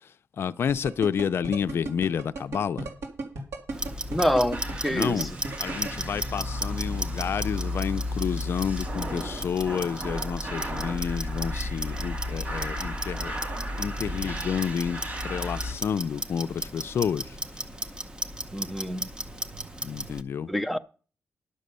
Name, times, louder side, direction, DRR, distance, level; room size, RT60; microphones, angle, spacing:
voice 1, 0.0-2.9 4.9-5.3 5.6-13.3 13.8-17.4 19.8-20.5, left 7 dB, 55° left, 0.5 m, -30 dB
sound 1, 0.7-5.9, right 2 dB, 80° right, 3.4 m, -34 dB
Clock, 3.7-20.2, right 1 dB, 20° right, 0.9 m, -36 dB
voice 2, 4.1-5.3 18.5-19.1 20.5-20.8, equal, ahead, 0.5 m, -26 dB
sound 2, 4.5-15.7, left 1 dB, 35° right, 2.2 m, -34 dB
11.5 x 6.3 x 6.8 m
wide cardioid pair, 140°, 5 cm